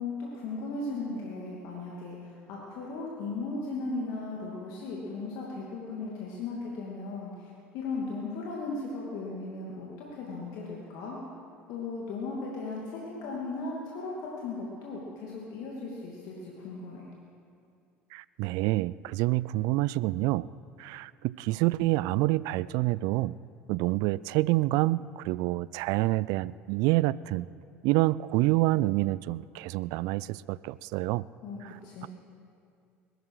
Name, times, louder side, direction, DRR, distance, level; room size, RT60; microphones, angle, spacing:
voice 1, 0.0-11.2 11.7-17.0 31.4-32.1, left 3 dB, 60° left, -4 dB, 2.6 m, -37 dB
voice 2, 18.1-20.5 20.8-23.3 23.7-27.5 27.8-31.3 31.6-31.8 32.0-32.1, right 18 dB, 60° right, 20 dB, 0.4 m, -27 dB
21.0 x 13.0 x 4.9 m, 2.4 s
hypercardioid pair, 65°, 7 cm